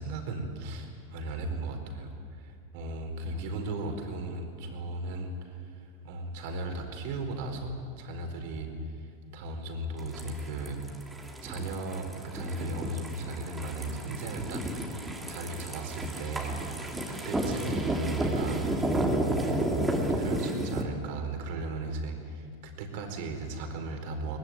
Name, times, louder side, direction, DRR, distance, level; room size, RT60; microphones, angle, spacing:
voice 1, 0.0-2.1 2.4-10.8 11.4-16.5 17.1-19.0 19.2-19.6 19.9-24.4, right 2 dB, 60° right, 4 dB, 4.6 m, -36 dB
sound 1, 10.0-20.8, right 1 dB, 10° right, 2.9 m, -32 dB
22.5 x 20.0 x 9.4 m, 2.4 s
supercardioid pair, 140°, 0 cm